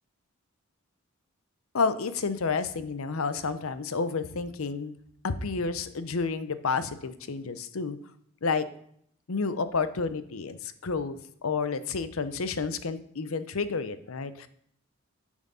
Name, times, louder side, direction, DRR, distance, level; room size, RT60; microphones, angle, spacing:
voice 1, 1.7-5.0 5.2-8.0 8.4-8.6 9.3-14.5, left 4 dB, 75° left, 12 dB, 0.7 m, -30 dB
7.2 x 6.2 x 5.5 m, 0.68 s
head